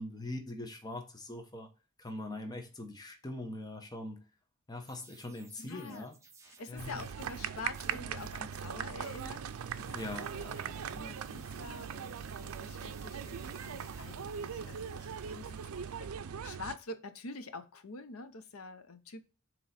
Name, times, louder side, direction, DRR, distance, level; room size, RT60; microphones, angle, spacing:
voice 1, 0.0-1.7 2.0-4.3 4.7-6.2 6.7-7.0 9.9-11.1, left 1 dB, 20° left, 0.9 m, -42 dB
sound 1, 4.9-16.3, right 5 dB, 15° right, 0.9 m, -60 dB
voice 2, 5.6-6.1 6.6-9.4 9.7-10.0 10.7-19.2, left 3 dB, 80° left, 0.8 m, -46 dB
sound 2, 6.8-16.8, right 7 dB, 85° right, 0.5 m, -40 dB
7.6 x 3.0 x 4.1 m
head